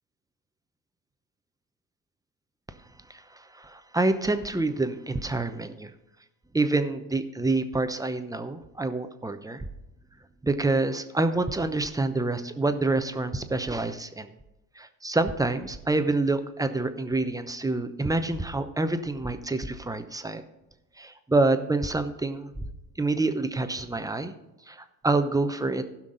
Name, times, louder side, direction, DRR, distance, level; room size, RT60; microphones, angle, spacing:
voice 1, 3.1-5.9 6.5-9.7 10.4-14.3 14.8-20.4 21.0-22.5 23.0-24.3 24.7-25.8, right 2 dB, 10° right, 9 dB, 0.8 m, -27 dB
15.5 x 6.0 x 4.0 m, 0.94 s
hypercardioid pair, 75°, 43 cm